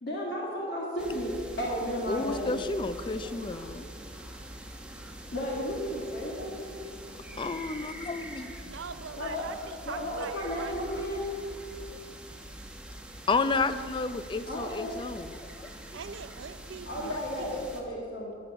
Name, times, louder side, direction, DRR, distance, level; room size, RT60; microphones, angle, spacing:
voice 1, 0.0-2.5 5.3-6.7 9.2-9.5 9.8-11.3 14.5-15.0 16.9-18.3, equal, 55° left, -3 dB, 1.7 m, -33 dB
sound 1, 1.0-17.8, right 1 dB, 5° right, 0.9 m, -44 dB
voice 2, 2.1-3.8 7.4-8.5 13.3-15.3, left 3 dB, 25° left, 13 dB, 0.4 m, -31 dB
voice 3, 8.6-10.8 15.9-17.5, right 5 dB, 80° right, 12 dB, 0.6 m, -42 dB
11.0 x 6.8 x 8.1 m, 2.3 s
head